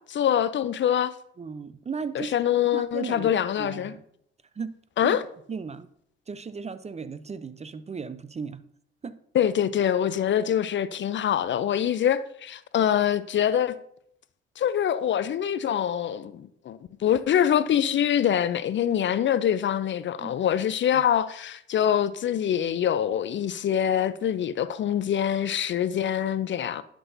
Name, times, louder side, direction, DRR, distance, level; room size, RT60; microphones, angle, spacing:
voice 1, 0.1-1.1 2.1-3.9 5.0-5.2 9.3-13.8 14.6-26.8, left 9 dB, 40° left, 0.5 m, -24 dB
voice 2, 1.4-2.4 2.7-3.3 3.6-4.0 4.6-4.7 5.0-5.2 5.5-5.9 6.3-8.6 9.0-9.1 20.2-20.3 20.9-21.0, right 5 dB, 20° right, 0.5 m, -35 dB
10.5 x 6.1 x 2.6 m
hypercardioid pair, 55°, 30 cm